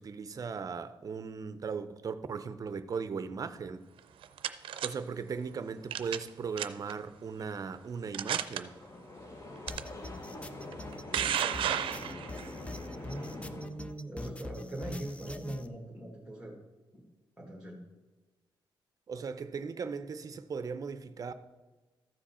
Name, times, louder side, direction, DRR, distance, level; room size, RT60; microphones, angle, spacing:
voice 1, 0.0-3.9 4.8-8.8 12.0-12.1 19.1-21.3, right 5 dB, 45° right, 0.6 m, -38 dB
sound 1, 4.0-4.9 5.9-6.3 6.6-6.9 7.6-7.7 8.1-8.6 9.7-9.8 10.7-12.5, right 10 dB, 90° right, 0.5 m, -32 dB
sound 2, 8.3-13.7, left 2 dB, 35° left, 1.1 m, -44 dB
sound 3, 9.7-15.7, left 2 dB, 15° left, 0.5 m, -45 dB
voice 2, 11.4-12.1 13.0-16.6 16.9-17.0 17.4-17.8, right 1 dB, 10° right, 1.5 m, -41 dB
13.5 x 4.9 x 4.3 m
cardioid pair, 115°, 9 cm